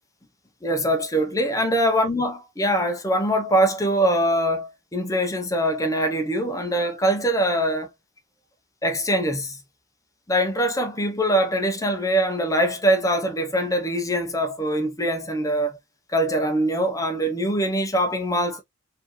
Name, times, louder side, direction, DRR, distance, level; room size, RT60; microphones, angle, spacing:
voice 1, 0.6-7.9 8.8-9.6 10.3-15.8 16.1-18.6, right 1 dB, 15° left, 0.7 m, -23 dB
4.3 x 2.7 x 3.0 m
head